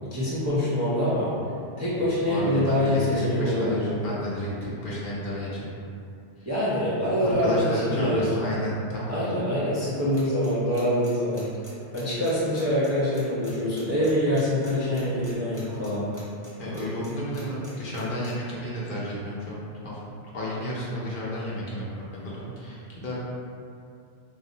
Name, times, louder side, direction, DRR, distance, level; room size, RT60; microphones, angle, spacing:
voice 1, 0.1-1.3 1.8-3.8 6.4-8.3 9.1-11.5 11.9-16.0, left 1 dB, 25° right, -10 dB, 0.3 m, -25 dB
voice 2, 2.0-5.7 6.4-6.5 7.2-9.3 16.6-20.0 20.3-23.2, equal, 60° left, -7 dB, 0.7 m, -31 dB
sound 1, 10.1-17.1 17.3-18.3, left 1 dB, 20° left, 0.6 m, -48 dB
2.4 x 2.0 x 3.8 m, 2.4 s
omnidirectional pair, 1.1 m